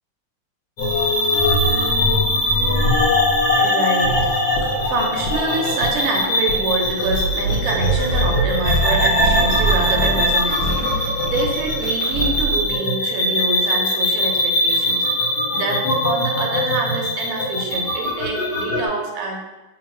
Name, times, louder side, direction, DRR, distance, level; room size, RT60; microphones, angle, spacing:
sound 1, 0.8-18.9, left 1 dB, 55° left, 1.2 m, -20 dB
Gurgling / Sink (filling or washing) / Liquid, 2.8-3.1 4.0-6.7 7.1-7.4 7.9-8.1 9.1-9.3, right 1 dB, 80° left, 1.3 m, -30 dB
voice 1, 3.5-19.4, right 3 dB, 65° right, 0 dB, 0.9 m, -26 dB
sound 2, 7.0-12.8, right 3 dB, 90° right, 1.4 m, -24 dB
2.9 x 2.6 x 4.2 m, 1.1 s
omnidirectional pair, 2.1 m